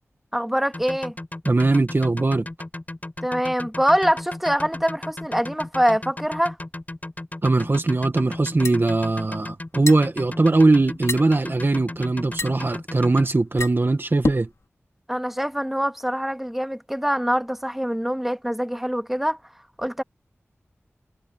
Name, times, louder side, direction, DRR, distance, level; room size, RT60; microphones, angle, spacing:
voice 1, 0.3-1.2 3.2-6.6 15.1-19.4 19.8-20.0, equal, 5° right, 2.3 m, -24 dB
sound 1, 0.7-13.3, left 2 dB, 35° left, 6.8 m, -35 dB
voice 2, 1.5-2.5 7.4-14.5, right 2 dB, 50° right, 1.8 m, -20 dB
sound 2, 8.2-14.6, left 3 dB, 85° left, 5.5 m, -32 dB
wide cardioid pair, 55°, 5 cm